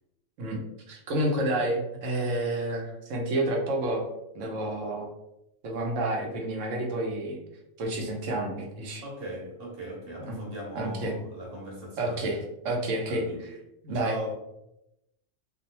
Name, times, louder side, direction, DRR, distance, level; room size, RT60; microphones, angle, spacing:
voice 1, 0.9-4.0 4.3-5.1 5.6-7.4 7.8-9.0 10.3-10.4 10.7-11.1 12.0-13.2 13.8-14.2, right 1 dB, 85° right, 1 dB, 1.0 m, -29 dB
voice 2, 9.0-12.3 13.1-13.5 13.9-14.3, equal, 55° right, -2 dB, 1.0 m, -39 dB
2.6 x 2.0 x 2.8 m, 0.86 s
omnidirectional pair, 1.3 m